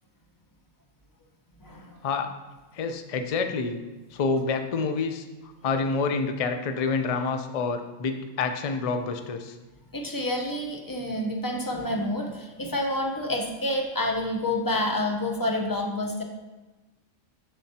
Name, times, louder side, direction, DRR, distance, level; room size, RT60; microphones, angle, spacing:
voice 1, 1.6-2.0 9.9-16.2, left 1 dB, 20° left, 1 dB, 0.7 m, -28 dB
voice 2, 2.7-3.8 4.1-9.6, left 4 dB, 60° left, 7 dB, 0.3 m, -28 dB
7.2 x 7.0 x 2.8 m, 1.2 s
omnidirectional pair, 1.3 m